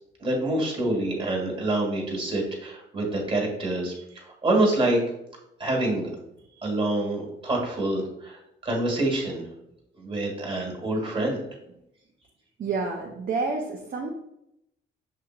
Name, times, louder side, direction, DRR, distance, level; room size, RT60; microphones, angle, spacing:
voice 1, 0.2-5.0 5.6-6.1 6.6-9.4 10.0-11.4, right 1 dB, 25° right, -1 dB, 1.7 m, -26 dB
voice 2, 12.6-14.1, right 4 dB, 45° right, 0 dB, 0.6 m, -29 dB
6.6 x 2.9 x 2.4 m, 0.81 s
cardioid pair, 90°, 20 cm